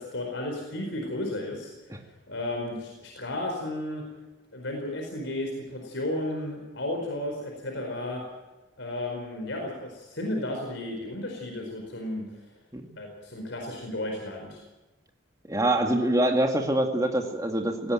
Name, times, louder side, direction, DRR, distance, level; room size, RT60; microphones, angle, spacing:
voice 1, 0.0-1.7 2.3-4.0 4.5-8.2 8.8-12.2 13.0-14.6, left 1 dB, 65° left, 1 dB, 4.7 m, -33 dB
voice 2, 15.5-17.9, right 1 dB, 15° right, 3 dB, 2.1 m, -25 dB
19.0 x 16.5 x 9.2 m, 1.1 s
head